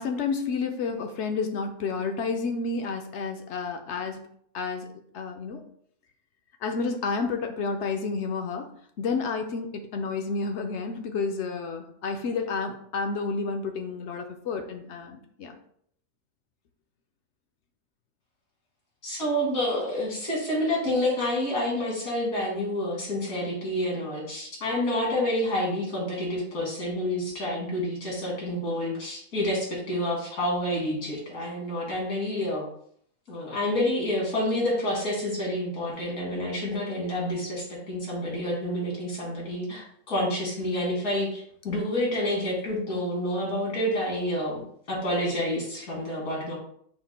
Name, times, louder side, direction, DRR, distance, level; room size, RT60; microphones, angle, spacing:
voice 1, 0.0-4.2 4.5-5.6 6.6-8.7 9.0-15.5, left 4 dB, 60° left, 5 dB, 0.8 m, -30 dB
voice 2, 19.0-32.6 33.3-44.6 44.9-46.6, left 1 dB, 80° left, -3 dB, 2.2 m, -28 dB
5.9 x 2.2 x 4.1 m, 0.65 s
omnidirectional pair, 1.5 m